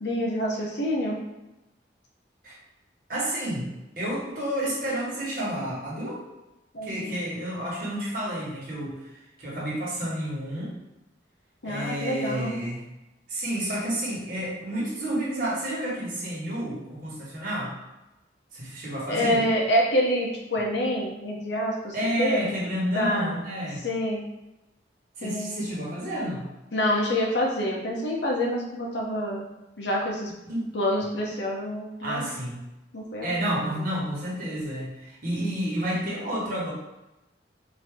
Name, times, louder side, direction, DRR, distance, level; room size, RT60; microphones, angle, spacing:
voice 1, 0.0-1.2 6.7-7.1 11.6-12.5 19.0-22.5 22.9-23.3 23.8-24.2 25.2-25.5 26.7-29.5 29.8-30.3 30.7-32.3 32.9-33.9, equal, 70° left, -2 dB, 0.9 m, -27 dB
voice 2, 3.1-3.7 4.0-6.2 6.8-9.1 9.4-10.7 11.6-12.8 13.3-17.7 18.5-19.4 21.9-23.8 25.2-26.4 30.5-30.7 32.0-32.6 33.2-36.7, right 1 dB, 50° right, -5 dB, 1.5 m, -30 dB
4.5 x 2.8 x 3.6 m, 0.97 s
head